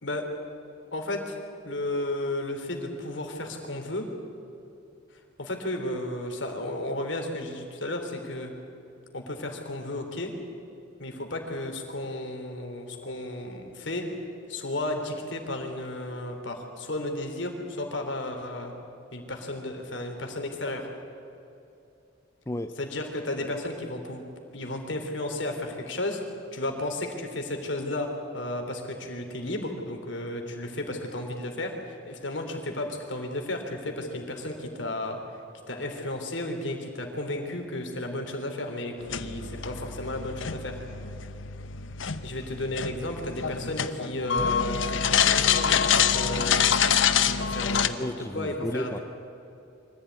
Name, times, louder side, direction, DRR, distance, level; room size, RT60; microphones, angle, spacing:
voice 1, 0.9-1.4 1.6-4.1 5.1-8.5 9.1-10.3 11.0-18.7 19.1-20.9 22.8-24.2 24.5-26.2 26.5-35.4 35.7-40.8 42.2-46.9 47.2-49.0, left 1 dB, 70° left, 3 dB, 3.5 m, -33 dB
voice 2, 22.5-22.8 48.0-49.0, left 1 dB, 15° left, 8 dB, 0.6 m, -33 dB
sound 1, 39.0-47.9, left 7 dB, 85° left, 1.0 m, -26 dB
24.0 x 15.0 x 9.5 m, 2.7 s
head